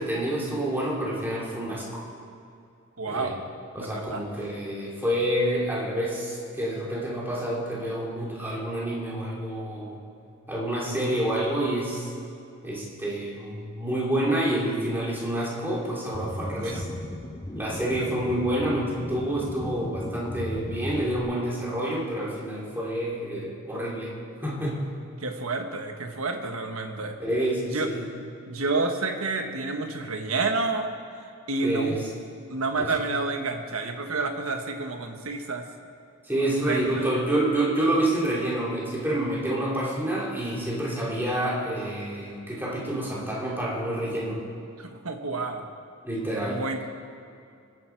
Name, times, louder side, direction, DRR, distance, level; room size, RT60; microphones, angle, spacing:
voice 1, 0.0-2.0 3.1-3.4 3.7-10.0 10.5-12.1 12.6-16.9 17.6-24.1 24.4-24.8 27.2-28.0 31.6-32.0 32.8-32.9 36.2-44.4 46.0-46.6, right 1 dB, 10° right, -5 dB, 2.9 m, -28 dB
voice 2, 3.0-3.4 3.8-4.2 16.6-16.7 25.2-27.2 27.7-27.9 28.5-30.9 31.5-32.0 32.5-35.6 36.6-37.2 44.8-45.6 46.5-46.8, right 3 dB, 80° right, 5 dB, 1.3 m, -29 dB
sound 1, 16.1-21.2, left 1 dB, 15° left, 0.8 m, -36 dB
22.5 x 9.2 x 4.6 m, 2.5 s
head